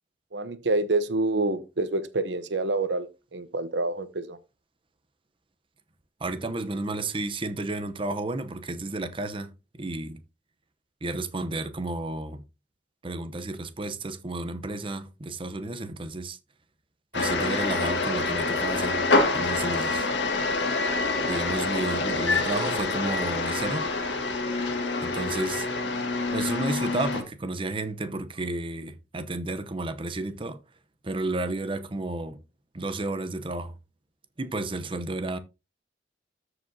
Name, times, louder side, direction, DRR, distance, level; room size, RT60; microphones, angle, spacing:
voice 1, 0.3-4.4, right 2 dB, 70° right, 0.9 m, -27 dB
voice 2, 6.2-9.5 9.7-10.2 11.0-12.4 13.0-16.4 17.1-19.1 19.3-20.1 21.2-23.9 25.0-25.7 26.3-30.6 31.0-32.4 32.7-33.7 34.4-35.4, right 2 dB, 30° right, 0.8 m, -32 dB
sound 1, 17.1-27.2, left 3 dB, 70° left, 1.7 m, -26 dB
13.5 x 5.0 x 2.7 m
head